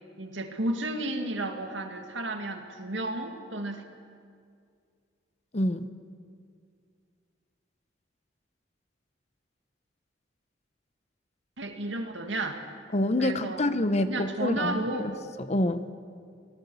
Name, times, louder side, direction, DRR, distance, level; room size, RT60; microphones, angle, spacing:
voice 1, 0.2-3.8 11.6-12.7 13.2-13.6 14.1-15.2, right 2 dB, 80° right, 5 dB, 2.1 m, -32 dB
voice 2, 5.5-5.9 12.9-15.1 15.5-15.9, left 1 dB, 35° left, 11 dB, 0.9 m, -27 dB
25.5 x 18.5 x 7.1 m, 2.2 s
head